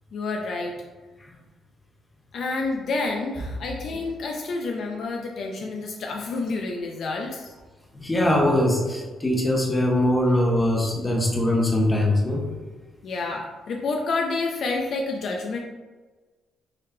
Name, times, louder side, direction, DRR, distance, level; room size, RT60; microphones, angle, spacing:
voice 1, 0.1-0.7 2.3-7.5 13.0-15.6, left 3 dB, 65° left, 1 dB, 0.4 m, -29 dB
voice 2, 7.9-12.4, left 1 dB, 20° left, -1 dB, 0.9 m, -22 dB
3.9 x 3.2 x 2.7 m, 1.3 s
cardioid pair, 90°, 0 cm